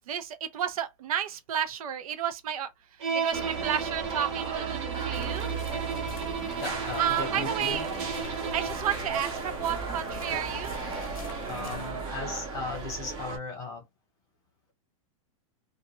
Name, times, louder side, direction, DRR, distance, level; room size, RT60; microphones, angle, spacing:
voice 1, 0.1-2.7 3.1-5.5 7.0-7.9 8.5-10.8, right 9 dB, 85° right, 0.5 m, -31 dB
Bowed string instrument, 3.0-8.9, right 6 dB, 50° right, 0.8 m, -34 dB
sound 1, 3.3-13.4, right 5 dB, 20° right, 0.6 m, -35 dB
sound 2, 5.1-11.9, left 4 dB, 75° left, 0.5 m, -43 dB
voice 2, 6.6-7.8 8.3-8.4 11.5-13.8, left 4 dB, 15° left, 0.9 m, -37 dB
2.3 x 2.1 x 2.9 m
supercardioid pair, 170°, 18 cm